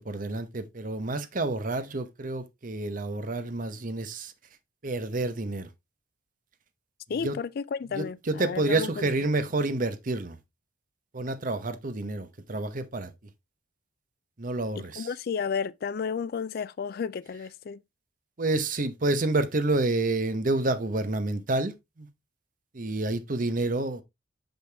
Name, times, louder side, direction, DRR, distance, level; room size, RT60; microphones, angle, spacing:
voice 1, 0.0-4.3 4.8-5.7 7.2-7.4 7.9-10.4 11.1-13.1 14.4-15.1 18.4-22.1 22.7-24.0, right 2 dB, 45° right, 0.9 m, -29 dB
voice 2, 7.1-9.1 15.0-17.8, left 6 dB, 55° left, 0.4 m, -32 dB
6.4 x 5.3 x 3.3 m
head